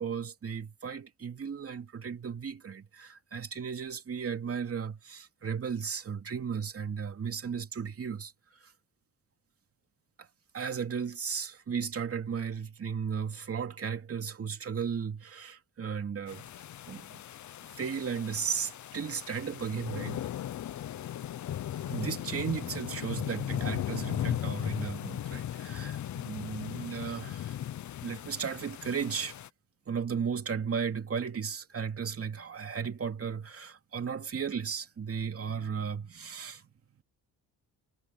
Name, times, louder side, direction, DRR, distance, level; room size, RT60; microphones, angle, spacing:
voice 1, 0.0-8.3 8.6-8.7 10.2-10.3 10.5-16.4 16.9-17.2 17.8-20.3 21.8-27.5 28.0-29.4 29.9-36.7, right 6 dB, 40° right, 2.7 m, -35 dB
sound 1, 16.3-29.5, left 11 dB, 50° left, 0.7 m, -37 dB
cardioid pair, 115°, 36 cm